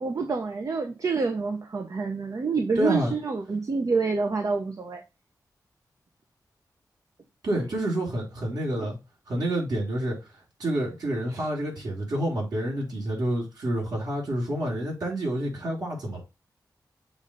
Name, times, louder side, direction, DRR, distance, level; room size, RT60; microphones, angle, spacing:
voice 1, 0.0-5.0 8.8-8.9 11.3-11.5, right 4 dB, 55° right, 0.8 m, -27 dB
voice 2, 2.8-3.1 7.4-9.0 9.3-10.2 10.6-16.2, right 1 dB, 70° right, 4.0 m, -28 dB
7.1 x 2.6 x 5.5 m
wide cardioid pair, 120°, 7 cm